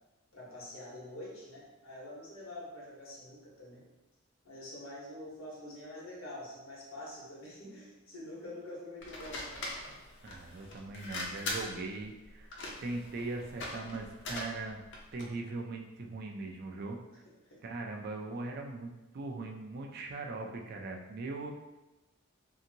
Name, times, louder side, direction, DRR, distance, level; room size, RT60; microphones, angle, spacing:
voice 1, 0.3-3.8 4.4-9.5 17.1-17.6, left 1 dB, 85° left, -5 dB, 1.1 m, -46 dB
sound 1, 9.0-15.4, left 2 dB, 55° left, 0.5 m, -42 dB
voice 2, 10.2-12.5 12.8-14.8 15.1-17.0 17.6-21.5, right 3 dB, 50° right, 2 dB, 0.4 m, -40 dB
2.7 x 2.6 x 2.7 m, 1.0 s
head